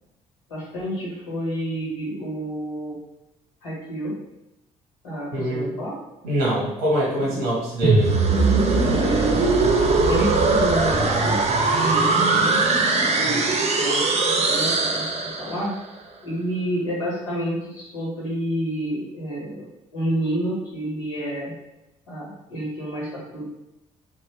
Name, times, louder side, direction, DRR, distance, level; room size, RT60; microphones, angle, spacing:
voice 1, 0.5-3.0 3.6-4.2 5.0-6.0 6.9-7.4 8.6-9.5 10.1-12.9 13.2-15.8 16.2-21.5 22.1-23.4, right 1 dB, 80° left, -5 dB, 1.3 m, -30 dB
voice 2, 5.3-5.7 6.2-8.2 13.2-13.3, right 1 dB, 85° right, -5 dB, 1.1 m, -24 dB
sound 1, 7.8-15.7, right 3 dB, 35° right, 0.6 m, -20 dB
3.6 x 2.1 x 3.3 m, 0.94 s
hypercardioid pair, 50°, 19 cm